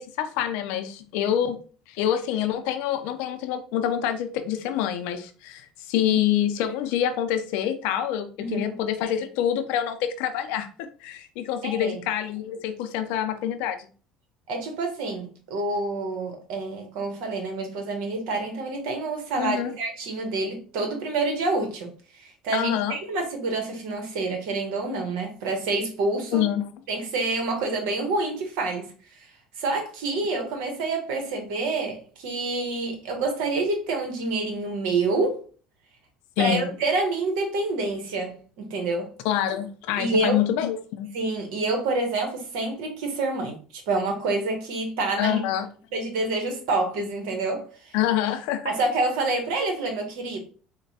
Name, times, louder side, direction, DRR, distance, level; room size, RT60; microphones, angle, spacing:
voice 1, 0.0-1.6 1.9-13.9 19.4-19.8 22.5-23.0 26.3-26.6 36.4-36.7 39.2-41.1 45.2-45.7 47.9-48.7, left 10 dB, 75° left, 0.4 m, -26 dB
voice 2, 8.4-8.7 11.6-12.0 14.5-26.4 26.9-28.9 29.6-35.4 36.4-39.1 40.0-40.4 41.1-45.4 45.9-47.9 48.6-50.4, right 3 dB, 75° right, 1.0 m, -27 dB
3.9 x 2.2 x 2.8 m
hypercardioid pair, 75°, 2 cm